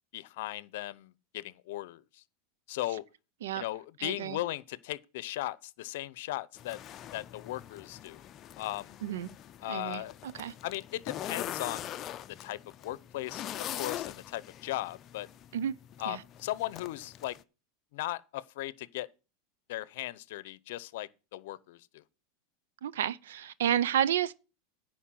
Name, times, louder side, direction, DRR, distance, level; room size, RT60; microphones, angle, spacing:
voice 1, 0.1-2.0 2.7-3.0 3.5-6.8 7.1-8.2 8.6-9.0 9.6-10.1 10.6-11.9 12.4-15.3 16.0-17.4 17.9-19.1 19.7-22.0, left 16 dB, 70° left, 0.7 m, -37 dB
voice 2, 4.0-4.4 9.0-9.3 9.7-10.5 15.5-15.7 16.1-16.2 22.8-24.3, right 10 dB, 85° right, 0.6 m, -31 dB
sound 1, 6.6-17.4, left 11 dB, 35° left, 0.5 m, -43 dB
10.0 x 4.6 x 7.5 m
supercardioid pair, 115°, 0 cm